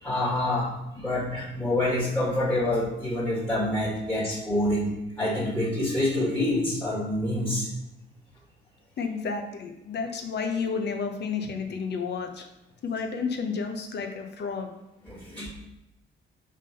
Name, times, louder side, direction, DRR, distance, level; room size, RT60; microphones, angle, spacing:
voice 1, 0.0-7.7 15.0-15.5, left 1 dB, 5° left, -8 dB, 1.9 m, -27 dB
voice 2, 9.0-12.5 12.8-14.7, left 5 dB, 60° left, 5 dB, 1.0 m, -31 dB
5.1 x 3.8 x 5.2 m, 0.90 s
cardioid pair, 90°, 20 cm